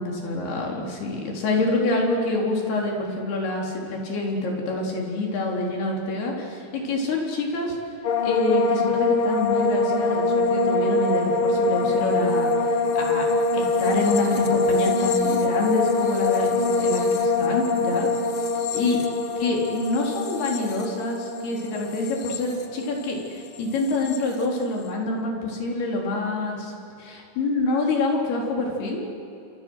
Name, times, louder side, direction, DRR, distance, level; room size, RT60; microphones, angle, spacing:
voice 1, 0.0-7.8 8.2-13.3 13.5-18.1 18.7-19.0 19.4-26.7 27.0-29.0, left 2 dB, 80° left, -1 dB, 5.8 m, -26 dB
sound 1, 8.0-23.3 23.5-24.2, left 3 dB, 55° left, 1.5 m, -24 dB
29.5 x 26.5 x 6.4 m, 2.7 s
omnidirectional pair, 4.5 m